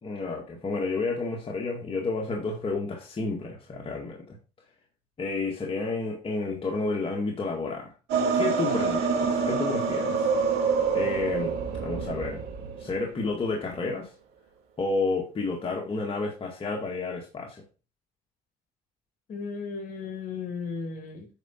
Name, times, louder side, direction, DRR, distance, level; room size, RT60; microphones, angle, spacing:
voice 1, 0.0-4.4 5.2-7.9 8.3-8.9 9.2-10.3 10.6-12.4 12.8-14.1 14.8-17.6, left 3 dB, 35° left, 2.0 m, -31 dB
sound 1, 8.1-12.9, right 5 dB, 80° right, 3.0 m, -26 dB
voice 2, 8.7-9.0 19.3-21.3, left 5 dB, 50° left, 3.0 m, -35 dB
9.1 x 5.1 x 4.4 m
cardioid pair, 110°, 17 cm